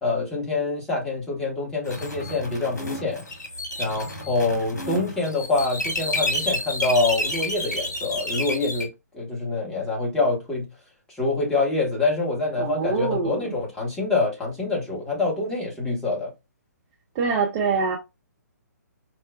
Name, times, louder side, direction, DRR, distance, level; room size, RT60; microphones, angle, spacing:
voice 1, 0.0-3.2 3.8-8.9 9.1-10.7 11.2-16.3, left 3 dB, 5° left, 1.1 m, -25 dB
sound 1, 1.9-8.8, left 1 dB, 70° left, 1.1 m, -30 dB
voice 2, 12.6-13.6 17.1-18.0, right 5 dB, 20° right, 0.5 m, -24 dB
4.5 x 2.1 x 2.3 m
figure-of-eight pair, 130°, 9 cm